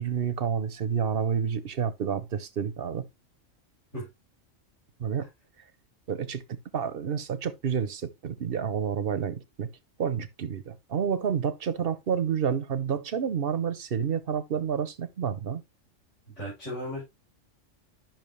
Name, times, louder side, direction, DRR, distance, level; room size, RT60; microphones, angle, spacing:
voice 1, 0.0-3.0 5.0-5.3 6.1-6.4 6.7-9.7 10.0-15.6, right 7 dB, 50° right, 0.9 m, -29 dB
voice 2, 16.3-17.0, equal, 65° left, 7.0 m, -35 dB
10.5 x 6.0 x 3.1 m
omnidirectional pair, 1.3 m